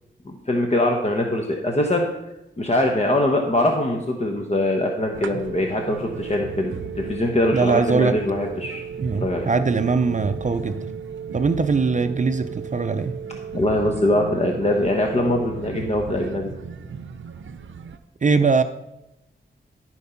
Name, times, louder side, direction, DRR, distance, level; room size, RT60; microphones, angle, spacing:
voice 1, 0.2-2.1 2.6-8.8 9.2-9.5 13.5-16.5, left 1 dB, 35° left, 2 dB, 1.1 m, -22 dB
sound 1, 5.1-18.0, right 6 dB, 90° right, 0.6 m, -37 dB
sound 2, 5.4-15.4, right 6 dB, 75° left, 1.9 m, -37 dB
voice 2, 7.5-8.2 9.0-10.9 11.3-13.1 18.2-18.6, right 4 dB, 40° right, 9 dB, 0.5 m, -21 dB
13.5 x 4.6 x 5.7 m, 0.91 s
wide cardioid pair, 80°, 19 cm